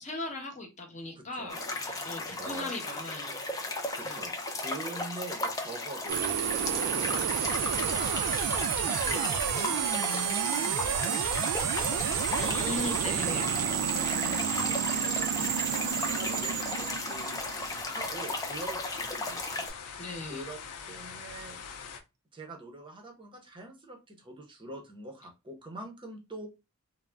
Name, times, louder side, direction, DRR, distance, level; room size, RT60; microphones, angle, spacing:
voice 1, 0.0-4.2 12.4-13.5 20.0-20.4, left 2 dB, 30° left, 2 dB, 0.8 m, -39 dB
voice 2, 1.1-1.6 2.2-2.7 3.9-4.3 4.6-6.2 6.6-8.4 8.8-12.7 13.2-17.3 17.8-20.6 20.9-21.6 22.3-26.5, right 2 dB, 20° right, 2 dB, 0.6 m, -45 dB
sound 1, 1.5-19.7, left 2 dB, 15° left, 0.3 m, -35 dB
sound 2, 6.1-18.0, right 9 dB, 85° right, 0.3 m, -30 dB
sound 3, 13.9-22.0, left 6 dB, 90° left, 0.5 m, -43 dB
2.4 x 2.0 x 3.2 m, 0.25 s
head